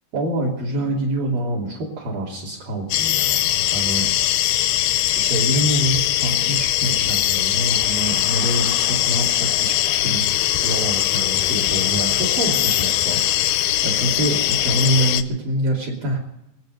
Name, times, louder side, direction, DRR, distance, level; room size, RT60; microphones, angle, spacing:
voice 1, 0.1-4.1 5.2-10.3 10.6-16.2, right 1 dB, 50° right, -1 dB, 4.4 m, -25 dB
sound 1, 2.9-15.2, left 13 dB, 80° left, 2.4 m, -21 dB
24.5 x 9.0 x 6.6 m, 0.84 s
omnidirectional pair, 5.3 m